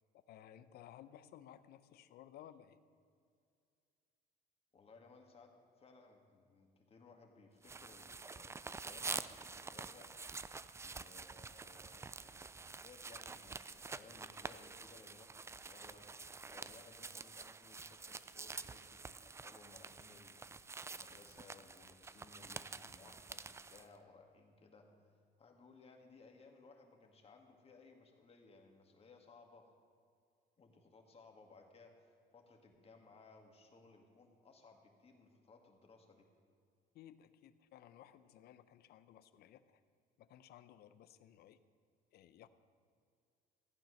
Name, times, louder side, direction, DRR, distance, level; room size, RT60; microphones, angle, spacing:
voice 1, 0.1-2.8 36.9-39.8 40.2-41.6 42.1-42.5, left 11 dB, 70° left, 13 dB, 0.7 m, -58 dB
voice 2, 4.7-10.1 10.8-16.1 16.5-20.4 20.9-29.7 30.6-36.3, left 3 dB, 35° left, 3 dB, 2.1 m, -61 dB
sound 1, 7.6-23.9, right 4 dB, 15° right, 0.4 m, -48 dB
15.0 x 9.1 x 6.5 m, 2.3 s
cardioid pair, 110°, 17 cm